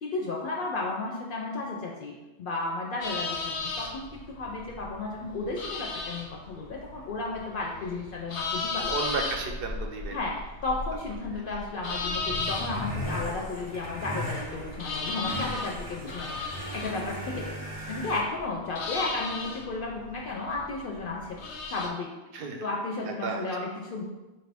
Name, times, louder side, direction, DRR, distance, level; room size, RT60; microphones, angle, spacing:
voice 1, 0.0-8.9 10.1-10.4 10.6-17.5 17.9-21.4 21.7-22.1 22.6-24.0, left 3 dB, 60° left, -2 dB, 0.6 m, -33 dB
sound 1, 3.0-21.9, left 3 dB, 85° left, 0.9 m, -36 dB
voice 2, 8.9-10.2 22.3-22.7 23.1-23.7, right 4 dB, 65° right, 3 dB, 0.7 m, -33 dB
sound 2, 12.1-18.2, equal, 25° right, 0.5 m, -38 dB
4.4 x 2.5 x 3.3 m, 1.1 s
omnidirectional pair, 1.1 m